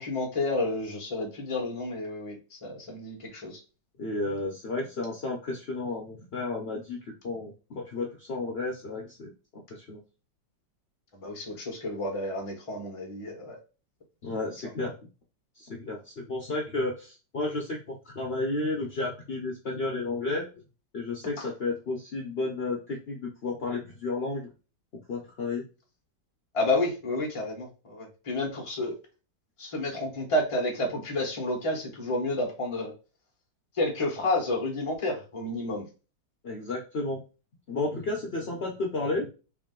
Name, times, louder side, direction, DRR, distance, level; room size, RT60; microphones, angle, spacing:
voice 1, 0.0-2.3 2.6-3.6 11.1-13.6 14.4-14.5 21.4-21.5 26.5-28.9 29.6-32.9 33.8-35.8, left 2 dB, 25° left, 0 dB, 0.8 m, -30 dB
voice 2, 4.0-7.0 7.2-9.3 9.7-10.0 14.2-15.0 15.6-20.4 20.9-24.5 25.1-25.6 36.4-37.2 37.7-39.3, left 2 dB, 85° left, 0 dB, 0.5 m, -32 dB
3.6 x 2.6 x 3.7 m, 0.32 s
omnidirectional pair, 2.1 m